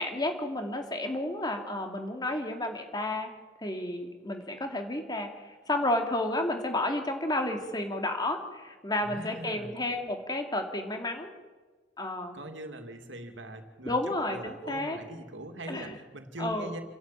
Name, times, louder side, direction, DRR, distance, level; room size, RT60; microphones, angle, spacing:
voice 1, 0.0-3.3 3.6-11.3 12.0-12.4 13.8-15.0 15.7-16.0 16.4-16.7, left 1 dB, 20° left, 4 dB, 2.6 m, -31 dB
voice 2, 9.0-9.7 12.3-16.8, right 1 dB, 85° right, 6 dB, 2.5 m, -41 dB
28.0 x 11.5 x 9.1 m, 1.3 s
head